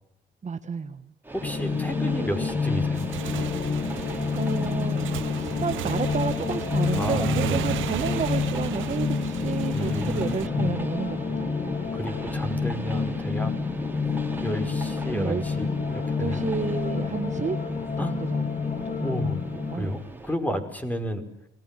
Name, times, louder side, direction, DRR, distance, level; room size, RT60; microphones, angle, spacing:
voice 1, 0.4-1.0 3.8-4.1 4.4-11.6 15.1-15.4 16.2-17.6 18.0-18.5 18.8-20.0, right 5 dB, 35° right, 9 dB, 1.4 m, -31 dB
Train, 1.2-20.4, right 2 dB, 10° right, 4.7 m, -40 dB
sound 1, 1.4-19.9, left 5 dB, 35° left, 2.2 m, -28 dB
voice 2, 1.4-3.1 6.9-7.7 9.7-10.7 11.9-13.5 14.0-16.4 18.0-18.1 19.0-19.4 19.7-21.2, equal, 10° left, 7 dB, 5.1 m, -32 dB
Motorcycle / Engine, 2.9-10.5, right 13 dB, 80° right, 1.0 m, -35 dB
27.5 x 20.5 x 7.6 m, 0.79 s
cardioid pair, 90°, 20 cm